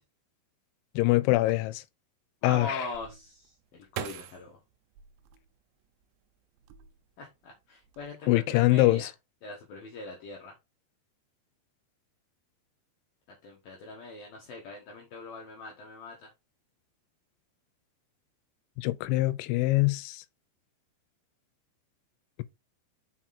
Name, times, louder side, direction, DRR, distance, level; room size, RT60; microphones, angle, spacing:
voice 1, 1.0-1.8 2.4-2.9 8.3-9.1 18.8-20.2, left 18 dB, 90° left, 3.0 m, -24 dB
voice 2, 2.4-4.6 7.2-9.1 9.4-10.5 13.4-16.3, left 2 dB, 65° left, 2.7 m, -41 dB
sound 1, 2.9-6.0 6.6-7.3 7.6-8.1, right 11 dB, 85° right, 3.0 m, -43 dB
6.1 x 5.8 x 4.2 m
omnidirectional pair, 5.2 m